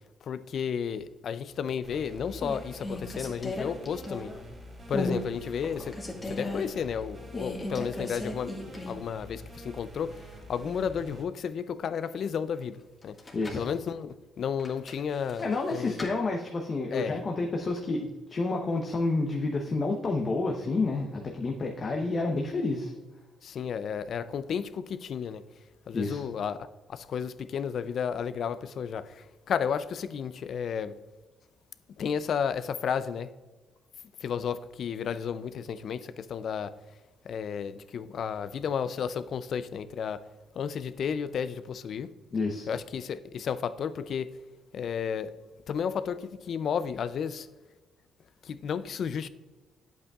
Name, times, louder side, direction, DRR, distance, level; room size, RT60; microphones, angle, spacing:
voice 1, 0.2-4.3 4.9-6.0 6.2-8.5 8.8-10.2 10.5-13.2 13.5-16.0 16.9-17.2 23.4-25.4 25.9-30.9 32.0-33.3 34.2-36.7 37.2-40.2 40.5-42.1 42.7-44.3 44.7-45.3 45.7-47.5 48.4-49.3, left 7 dB, 60° left, 0.4 m, -32 dB
sound 1, 1.6-2.0 2.3-4.5 4.9-5.2 5.6-6.6 7.3-9.1 9.4-9.5 13.0-13.7 14.6-16.1, left 1 dB, 25° left, 1.6 m, -36 dB
sound 2, 1.8-11.2, left 1 dB, 35° right, 2.1 m, -46 dB
voice 2, 13.3-13.7 15.4-22.9 25.9-26.2 42.3-42.7, left 3 dB, 40° left, 0.8 m, -29 dB
8.7 x 8.0 x 2.4 m
cardioid pair, 90°, 0 cm